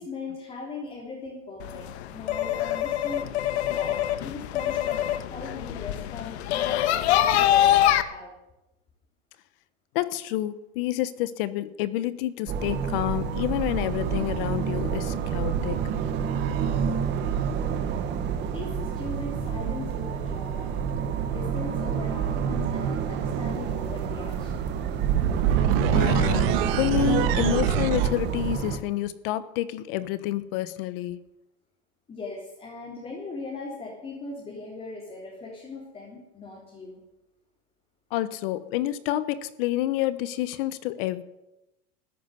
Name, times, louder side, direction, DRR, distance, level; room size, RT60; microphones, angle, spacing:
voice 1, 0.0-3.3 3.6-7.5 8.0-8.3 17.9-18.0 18.5-20.7 21.2-24.8 32.1-37.0, left 3 dB, 20° left, 3.8 m, -39 dB
sound 1, 1.6-8.0, left 12 dB, 85° left, 1.3 m, -24 dB
voice 2, 9.9-15.9 25.9-31.2 38.1-41.2, left 14 dB, 60° left, 1.2 m, -28 dB
sound 2, 12.5-28.8, right 7 dB, 35° right, 1.6 m, -28 dB
sound 3, 13.4-13.6 14.8-17.0 18.8-28.1, right 9 dB, 60° right, 1.9 m, -29 dB
14.0 x 11.0 x 9.4 m
supercardioid pair, 155°, 32 cm